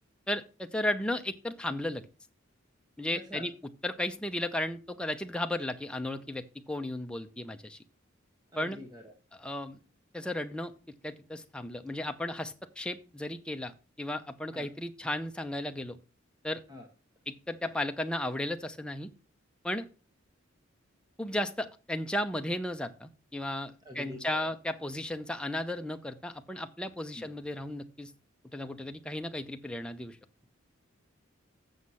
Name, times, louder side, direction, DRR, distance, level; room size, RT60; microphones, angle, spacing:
voice 1, 0.3-2.1 3.0-3.5 3.8-7.8 8.6-8.8 9.3-9.8 10.1-10.7 11.0-13.7 14.0-16.0 16.4-16.6 17.3-19.1 19.6-19.9 21.2-28.1 28.5-30.2, left 1 dB, 5° left, 6 dB, 0.6 m, -34 dB
voice 2, 3.1-3.5 8.5-9.1 14.5-14.7 16.7-16.9 23.8-24.5 27.2-27.3, left 1 dB, 20° right, 2 dB, 1.3 m, -45 dB
7.9 x 6.3 x 5.6 m, 0.33 s
head